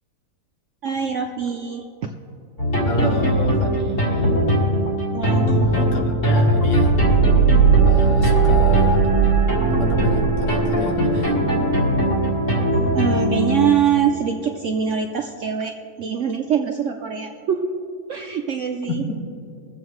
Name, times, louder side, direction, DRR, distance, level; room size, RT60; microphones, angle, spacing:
voice 1, 0.8-2.1 5.1-5.7 12.9-15.7 16.0-17.7 18.1-19.1, right 7 dB, 65° right, 4 dB, 0.7 m, -24 dB
sound 1, 2.6-13.7, right 2 dB, 45° left, 2.3 m, -18 dB
voice 2, 2.9-4.6 5.7-7.0 7.9-9.2 9.7-11.4 18.9-19.0, left 1 dB, 75° left, 1 dB, 1.8 m, -28 dB
22.5 x 7.9 x 3.1 m, 2.5 s
omnidirectional pair, 1.8 m